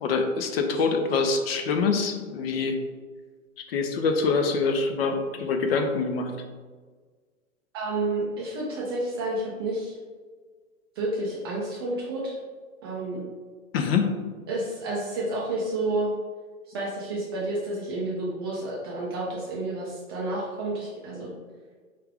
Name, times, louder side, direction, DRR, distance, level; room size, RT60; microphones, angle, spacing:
voice 1, 0.0-2.8 3.7-6.3 13.7-14.1, left 4 dB, 45° left, 5 dB, 0.6 m, -25 dB
voice 2, 7.7-10.0 11.0-12.4 12.8-13.3 14.5-16.1 16.7-21.3, right 2 dB, 20° right, -5 dB, 0.4 m, -30 dB
4.6 x 2.4 x 3.5 m, 1.5 s
figure-of-eight pair, 115°, 42 cm